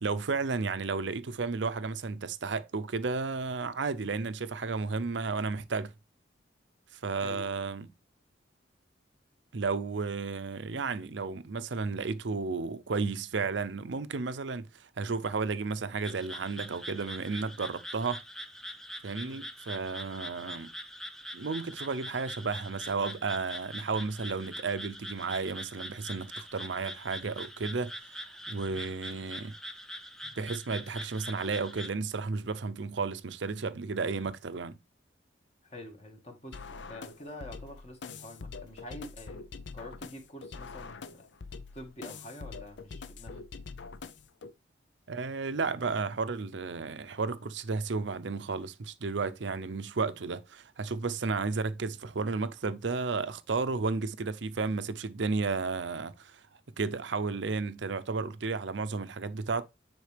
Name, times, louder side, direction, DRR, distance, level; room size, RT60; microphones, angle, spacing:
voice 1, 0.0-5.9 7.0-7.9 9.5-18.2 19.0-20.7 21.3-27.9 28.5-29.6 30.4-34.8 45.1-56.4 56.8-59.6, right 4 dB, 70° right, 0.6 m, -33 dB
sound 1, 16.0-31.9, equal, 5° left, 0.6 m, -43 dB
voice 2, 35.6-41.3 41.7-43.4, left 1 dB, 35° left, 1.8 m, -47 dB
sound 2, 36.5-44.5, left 4 dB, 70° left, 0.6 m, -44 dB
9.5 x 4.4 x 3.3 m
head